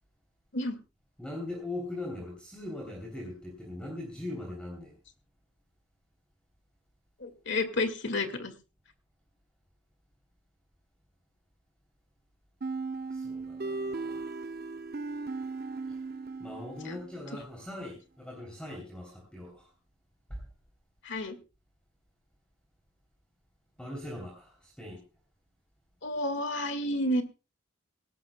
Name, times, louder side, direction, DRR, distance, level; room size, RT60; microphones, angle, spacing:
voice 1, 1.2-5.0 13.1-14.3 15.9-16.0 16.4-19.7 20.3-20.4 23.8-25.0, left 1 dB, 5° left, 0 dB, 3.1 m, -40 dB
voice 2, 7.2-8.5 21.0-21.4 26.0-27.2, left 1 dB, 55° left, 9 dB, 2.0 m, -30 dB
sound 1, 12.6-17.3, right 3 dB, 45° right, 0.7 m, -37 dB
18.0 x 17.5 x 2.2 m, 0.31 s
head